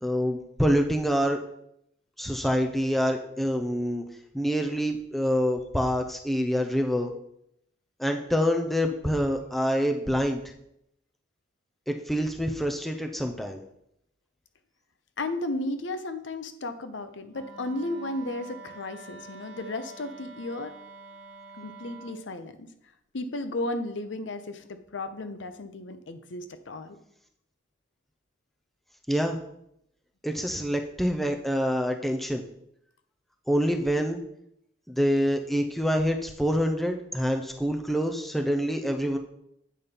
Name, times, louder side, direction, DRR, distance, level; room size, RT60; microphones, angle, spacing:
voice 1, 0.0-1.4 2.2-4.0 4.3-7.1 8.0-10.4 11.9-13.6 29.1-29.4 30.2-32.4 33.5-34.2 34.9-39.2, equal, ahead, 3 dB, 0.6 m, -26 dB
voice 2, 15.2-20.7 21.6-22.7 23.1-27.0, left 2 dB, 85° left, 9 dB, 0.7 m, -34 dB
Wind instrument woodwind instrument, 17.3-22.2, right 4 dB, 80° right, 1.1 m, -47 dB
8.6 x 4.2 x 5.2 m, 0.76 s
head